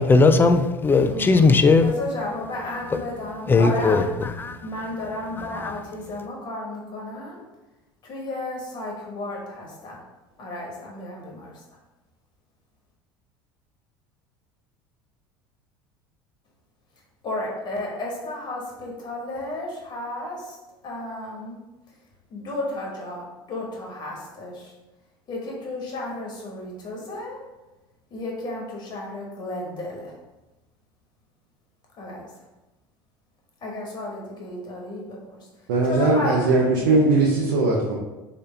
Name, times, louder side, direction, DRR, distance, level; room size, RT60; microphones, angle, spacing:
voice 1, 0.0-1.9 2.9-3.0 3.5-4.7 5.4-5.8, left 3 dB, 20° left, 8 dB, 0.3 m, -18 dB
voice 2, 1.1-4.1 4.6-7.4 8.0-10.0 10.4-11.6 17.2-20.6 20.8-21.6 22.3-24.7 25.3-27.4 28.1-30.1 32.0-32.3 33.6-35.5 35.8-36.9, left 1 dB, 40° left, -2 dB, 1.3 m, -33 dB
voice 3, 35.7-37.9, right 2 dB, 80° right, -4 dB, 0.6 m, -19 dB
3.3 x 2.9 x 3.3 m, 1.1 s
hypercardioid pair, 80°, 11 cm